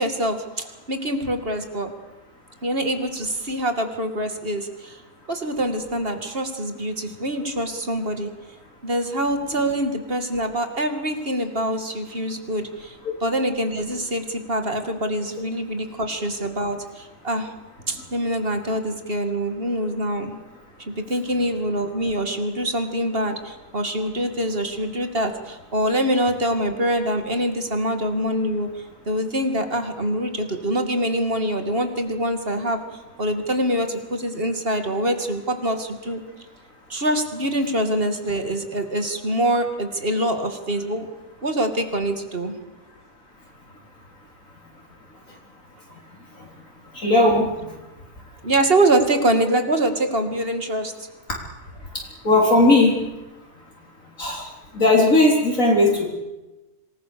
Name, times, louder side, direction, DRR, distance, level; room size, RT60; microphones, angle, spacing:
voice 1, 0.0-1.9 2.6-5.0 5.3-8.3 8.8-17.5 17.9-20.4 20.8-28.7 29.1-32.8 33.2-36.2 36.9-41.1 41.4-42.6 48.4-50.9, right 1 dB, 40° right, 6 dB, 2.6 m, -24 dB
voice 2, 46.9-47.5 52.2-52.9 54.2-54.4 54.7-56.1, left 2 dB, 60° left, -2 dB, 4.3 m, -17 dB
26.5 x 20.0 x 7.0 m, 1.1 s
omnidirectional pair, 1.6 m